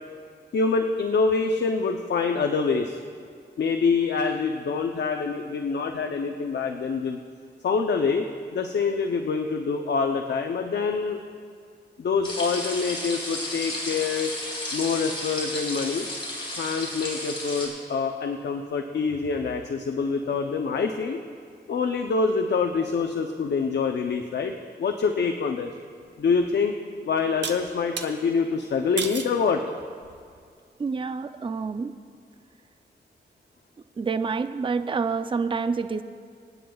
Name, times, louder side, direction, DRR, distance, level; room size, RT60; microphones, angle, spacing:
voice 1, 0.5-3.0 3.6-7.2 7.6-8.3 8.5-11.2 12.0-14.3 14.7-16.1 16.6-21.2 21.7-25.7 26.2-26.8 27.0-29.6, left 5 dB, 70° left, 5 dB, 0.6 m, -25 dB
sound 1, 12.2-17.7, left 1 dB, 30° left, 3.5 m, -33 dB
sound 2, 26.1-26.2 27.4-28.1 29.0-29.4 30.0-30.4, right 6 dB, 75° right, 0.9 m, -33 dB
voice 2, 30.8-31.9 34.0-36.0, right 5 dB, 30° right, 10 dB, 0.4 m, -27 dB
26.5 x 9.3 x 2.3 m, 2.2 s
cardioid pair, 80°, 18 cm